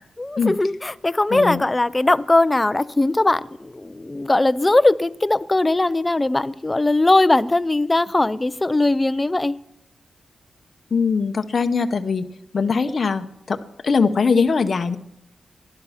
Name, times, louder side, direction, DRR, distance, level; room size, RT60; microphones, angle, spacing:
voice 1, 0.2-9.6, left 2 dB, 20° left, 16 dB, 0.5 m, -19 dB
voice 2, 1.3-1.6 10.9-12.3 12.5-13.6 13.8-15.0, left 5 dB, 50° left, 7 dB, 0.7 m, -21 dB
18.5 x 11.5 x 5.7 m, 0.83 s
cardioid pair, 95°, 0 cm